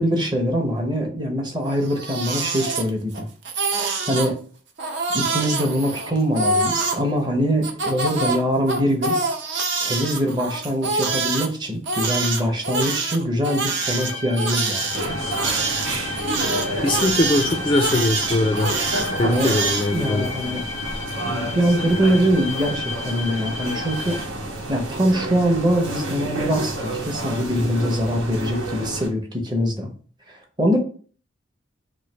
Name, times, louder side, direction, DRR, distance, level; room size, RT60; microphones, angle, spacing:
voice 1, 0.0-3.3 4.1-4.4 5.1-9.2 9.8-15.2 19.2-19.5 19.9-20.6 21.2-24.2 24.7-29.9 30.3-30.8, equal, 20° right, 3 dB, 0.7 m, -23 dB
Crying sobbing, 1.7-3.2 3.4-4.3 4.8-7.0 7.6-11.5 11.9-19.9, right 3 dB, 60° right, 0.7 m, -25 dB
sound 1, 13.8-24.2, left 4 dB, 85° left, 0.5 m, -33 dB
sound 2, 14.9-29.1, right 1 dB, 85° right, 1.1 m, -30 dB
voice 2, 16.8-18.8 19.2-20.3, left 2 dB, 25° left, 5 dB, 0.3 m, -21 dB
3.1 x 2.6 x 4.2 m, 0.42 s
head